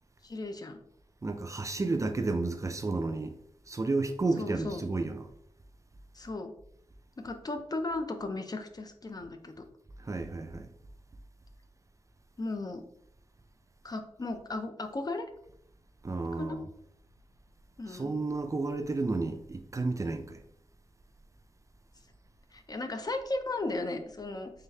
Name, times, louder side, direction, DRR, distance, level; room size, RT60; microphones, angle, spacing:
voice 1, 0.2-0.8 4.4-4.8 6.1-6.5 7.2-9.7 12.4-12.8 13.8-15.2 16.4-16.6 17.8-18.1 22.5-24.5, left 2 dB, 40° left, 0.5 m, -36 dB
voice 2, 1.2-3.4 3.7-5.3 10.0-10.7 16.0-16.6 17.9-20.4, right 3 dB, 30° right, 0.4 m, -32 dB
3.8 x 3.4 x 2.7 m
wide cardioid pair, 85°, 10 cm